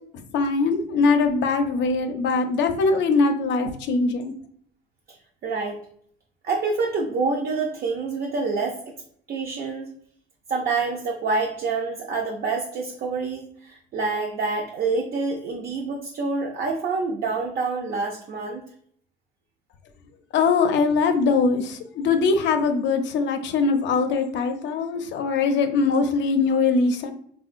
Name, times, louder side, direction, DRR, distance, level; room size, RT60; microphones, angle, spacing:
voice 1, 0.1-4.3 20.3-27.1, left 4 dB, 75° left, 7 dB, 0.4 m, -22 dB
voice 2, 5.4-5.8 6.4-8.8 9.3-9.9 10.5-18.6, right 4 dB, 55° right, 0 dB, 0.5 m, -27 dB
3.6 x 2.2 x 2.4 m, 0.63 s
cardioid pair, 130°, 19 cm